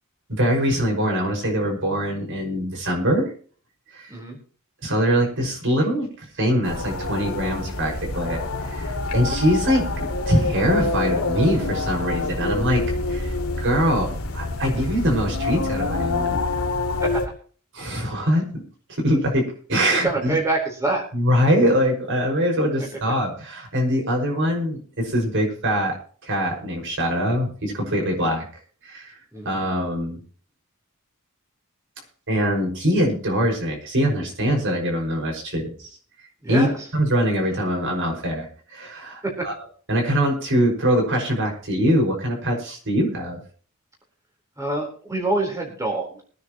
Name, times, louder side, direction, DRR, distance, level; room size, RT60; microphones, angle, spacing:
voice 1, 0.3-3.3 3.9-4.1 4.8-6.1 6.4-12.8 13.1-16.4 17.7-18.6 18.9-20.4 21.1-26.0 26.2-28.4 28.8-29.1 29.5-30.2 32.3-35.9 36.5-36.7 36.9-39.5 39.9-43.4, equal, 60° right, 1 dB, 5.7 m, -23 dB
sound 1, 6.6-17.3, left 2 dB, 75° left, 2.4 m, -26 dB
voice 2, 20.0-21.0 28.2-28.3 29.3-29.5 36.4-36.9 39.2-39.5 44.6-46.2, right 2 dB, 15° right, -1 dB, 4.1 m, -26 dB
23.5 x 9.7 x 3.0 m, 0.44 s
head